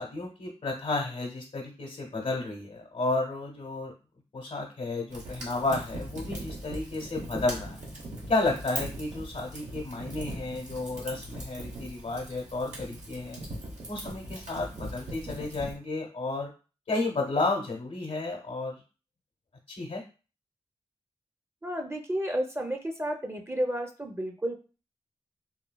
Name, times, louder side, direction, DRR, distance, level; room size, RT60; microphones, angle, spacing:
voice 1, 0.0-3.9 4.3-7.8 8.3-13.4 13.9-16.5 16.9-18.8 19.7-20.0, left 2 dB, 75° left, -1 dB, 0.7 m, -32 dB
Fire, 5.1-15.7, right 1 dB, 90° right, 0.9 m, -40 dB
voice 2, 21.6-24.6, equal, 20° right, 3 dB, 0.5 m, -31 dB
3.0 x 2.7 x 2.2 m, 0.34 s
cardioid pair, 50°, 12 cm